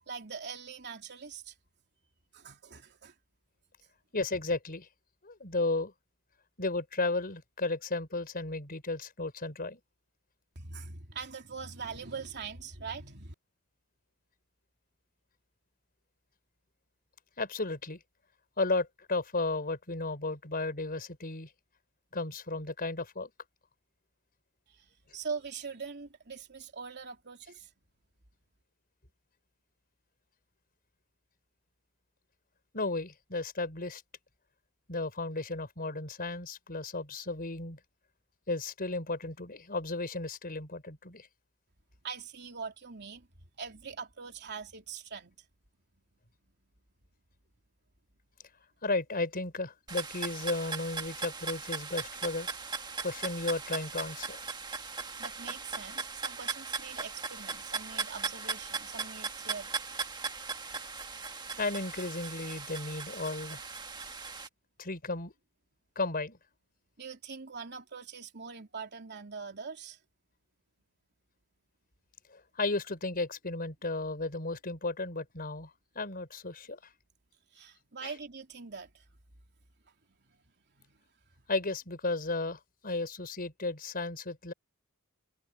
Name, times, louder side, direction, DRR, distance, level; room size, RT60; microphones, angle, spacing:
voice 1, 0.0-1.5 2.3-3.1 10.5-13.3 24.7-27.7 42.0-43.3 43.6-45.4 55.2-59.7 67.0-70.0 77.5-79.0 80.3-80.4 80.8-81.0, right 5 dB, 50° right, 3.2 m, -43 dB
voice 2, 4.1-4.9 5.2-5.9 6.6-9.8 17.4-18.0 18.6-21.5 22.1-23.3 32.7-34.0 34.9-37.8 38.5-41.3 48.8-52.5 53.0-54.5 61.6-63.6 64.8-65.3 65.9-66.4 72.3-75.7 75.9-76.8 78.0-78.1 81.5-84.5, left 3 dB, 45° left, 4.8 m, -34 dB
sound 1, 49.9-64.5, right 5 dB, 20° right, 1.5 m, -38 dB
head